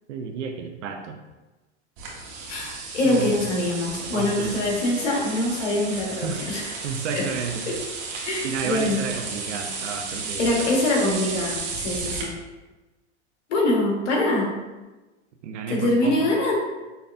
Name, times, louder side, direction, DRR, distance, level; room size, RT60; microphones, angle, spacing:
voice 1, 0.1-1.2 3.0-3.3 4.1-4.7 6.2-6.4 6.8-7.7 8.4-10.6 12.0-12.1 15.4-16.3, right 6 dB, 80° right, 4 dB, 0.6 m, -31 dB
sound 1, 2.0-12.2, right 4 dB, 60° right, 1.2 m, -33 dB
voice 2, 2.5-6.7 7.1-7.3 7.7-7.8 8.2-9.0 10.4-12.3 13.5-14.5 15.7-16.5, left 1 dB, 80° left, -1 dB, 1.4 m, -24 dB
5.6 x 3.2 x 2.5 m, 1.1 s
hypercardioid pair, 115°, 35 cm